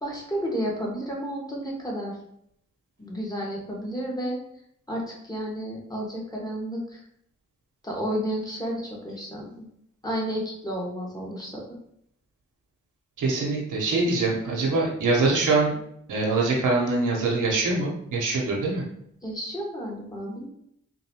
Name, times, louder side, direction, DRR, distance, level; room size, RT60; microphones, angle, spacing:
voice 1, 0.0-2.2 3.0-4.4 4.9-7.0 7.8-9.5 10.0-11.6 19.2-20.5, equal, 10° left, -3 dB, 1.5 m, -31 dB
voice 2, 13.2-15.7 16.1-18.8, right 3 dB, 80° right, -2 dB, 1.0 m, -24 dB
3.9 x 2.6 x 2.8 m, 0.71 s
supercardioid pair, 40°, 31 cm